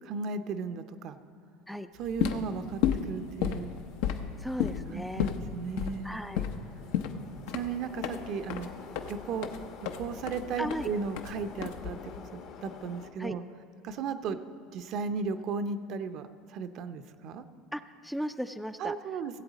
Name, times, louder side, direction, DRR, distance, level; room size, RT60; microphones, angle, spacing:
voice 1, 0.0-1.2 2.0-3.7 4.9-6.2 7.5-8.7 9.1-9.5 10.0-13.4 13.8-14.4 14.7-17.5 18.8-19.4, right 5 dB, 55° right, 10 dB, 0.6 m, -35 dB
sound 1, 2.0-12.2, left 9 dB, 75° left, 0.7 m, -33 dB
Subway metro underground, 2.8-13.1, left 6 dB, 60° left, 1.0 m, -49 dB
voice 2, 4.4-5.3 6.0-6.5 10.6-10.9 13.2-13.4 17.7-19.0, equal, ahead, 9 dB, 0.3 m, -36 dB
16.5 x 7.9 x 4.1 m, 2.4 s
supercardioid pair, 110°, 0 cm